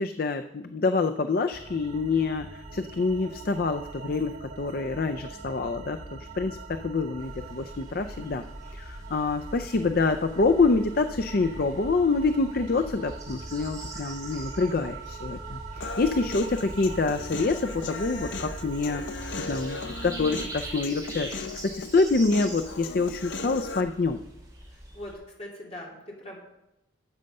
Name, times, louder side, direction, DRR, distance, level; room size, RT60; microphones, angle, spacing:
voice 1, 0.0-8.4 8.7-24.2, left 3 dB, 50° left, 8 dB, 0.4 m, -26 dB
sound 1, 1.5-20.8, right 3 dB, 75° right, 1.6 m, -42 dB
sound 2, 7.2-25.1, right 1 dB, 15° right, 3.0 m, -44 dB
Human voice, 15.8-23.8, left 3 dB, 70° left, 0.8 m, -37 dB
voice 2, 24.7-26.4, left 1 dB, 30° left, -3 dB, 2.8 m, -41 dB
13.0 x 7.8 x 5.4 m, 0.90 s
head